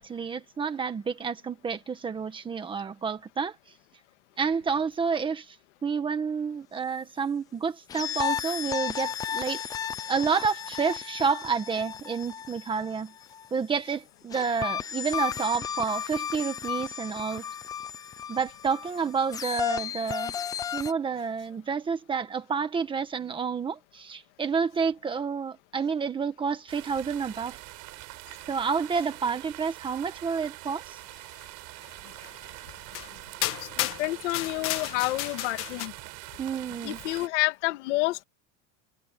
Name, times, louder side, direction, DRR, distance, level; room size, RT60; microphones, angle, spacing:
voice 1, 0.0-3.5 4.4-5.6 5.8-9.7 10.1-13.1 13.5-17.4 18.3-20.3 20.7-27.6 28.5-31.0 36.4-37.0, right 5 dB, 15° right, 1.4 m, -29 dB
sound 1, 7.9-13.5 14.3-20.9, left 8 dB, 10° left, 0.4 m, -34 dB
sound 2, 26.7-37.3, right 25 dB, 45° right, 5.6 m, -44 dB
sound 3, 32.2-32.3 32.9-33.1 33.4-35.9, left 16 dB, 35° left, 1.4 m, -32 dB
voice 2, 33.8-35.9 36.8-38.2, left 19 dB, 65° left, 2.0 m, -29 dB
supercardioid pair, 175°, 37 cm